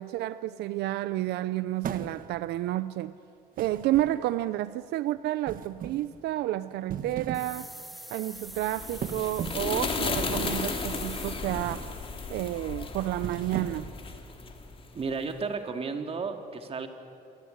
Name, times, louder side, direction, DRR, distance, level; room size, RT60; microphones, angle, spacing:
voice 1, 0.0-3.2 3.6-7.7 8.1-11.9 12.3-13.9, right 15 dB, 80° right, 14 dB, 0.7 m, -30 dB
sound 1, 1.8-2.5 3.6-4.5 5.5-6.1 6.8-7.6 7.9-8.2 9.0-9.7 10.2-10.7 11.5-11.9 12.3-12.6 13.1-14.0, right 8 dB, 55° right, 1.5 m, -38 dB
sound 2, 7.3-11.4, equal, ahead, 2.5 m, -44 dB
sound 3, 8.5-15.1, left 4 dB, 30° left, 3.2 m, -34 dB
voice 2, 14.9-16.9, right 4 dB, 35° right, 5 dB, 2.7 m, -33 dB
28.0 x 24.5 x 8.1 m, 2.7 s
cardioid pair, 110°, 17 cm